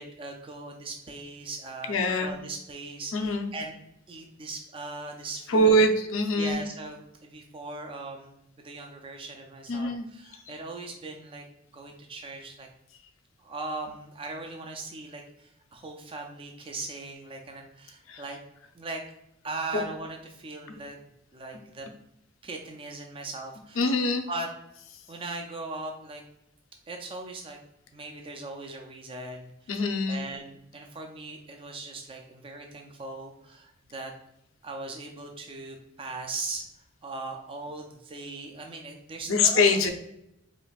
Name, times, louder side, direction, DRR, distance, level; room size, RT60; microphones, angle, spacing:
voice 1, 0.0-3.7 4.1-5.8 6.4-8.4 8.6-11.4 11.7-12.7 13.4-18.4 18.8-19.0 19.4-21.0 21.3-21.9 22.4-23.9 24.3-24.5 25.1-26.2 26.9-27.6 27.9-34.1 34.6-36.6 37.0-39.8, right 3 dB, 25° right, 2 dB, 0.4 m, -39 dB
voice 2, 1.9-2.4 3.1-3.5 5.5-6.6 9.7-10.1 18.1-18.2 19.7-19.9 23.8-24.2 29.7-30.2 39.3-39.9, left 1 dB, 80° left, 4 dB, 0.6 m, -23 dB
5.0 x 2.5 x 2.3 m, 0.83 s
head